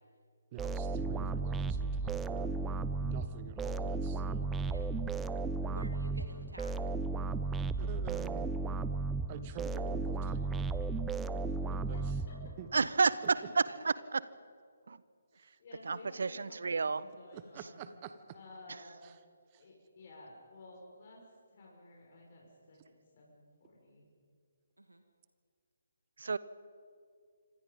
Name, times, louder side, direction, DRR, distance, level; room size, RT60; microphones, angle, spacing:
voice 1, 0.5-2.5 3.0-4.5 7.8-8.5 9.3-10.7 11.7-12.2 12.6-12.7 15.3-15.6 17.3-18.2 19.0-19.2 19.5-19.6, right 8 dB, 25° right, 11 dB, 1.4 m, -47 dB
sound 1, 0.6-12.8, right 4 dB, 10° right, 0.5 m, -35 dB
voice 2, 5.7-6.8 11.5-11.7 12.8-13.8 15.3-15.5 24.8-25.0, right 1 dB, 80° right, 7 dB, 2.0 m, -51 dB
voice 3, 11.9-12.3 15.6-17.9 18.3-19.1 19.5-21.2 21.5-24.0, left 2 dB, 40° left, -2 dB, 5.7 m, -54 dB
voice 4, 12.7-13.1 13.5-14.2 14.9-15.0 15.8-17.0 26.2-26.4, right 4 dB, 60° right, 17 dB, 1.0 m, -30 dB
26.5 x 26.0 x 5.4 m, 2.2 s
figure-of-eight pair, 140°, 0 cm